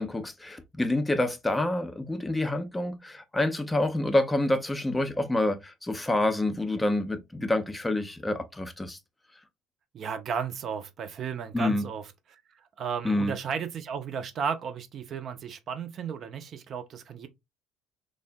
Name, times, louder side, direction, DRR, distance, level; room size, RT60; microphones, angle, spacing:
voice 1, 0.0-9.0 11.5-11.8 13.0-13.3, left 1 dB, 10° left, 0.4 m, -27 dB
voice 2, 9.9-12.0 12.3-12.4 12.8-17.3, right 7 dB, 45° right, 0.4 m, -34 dB
3.3 x 2.0 x 2.5 m
figure-of-eight pair, 60°, 0 cm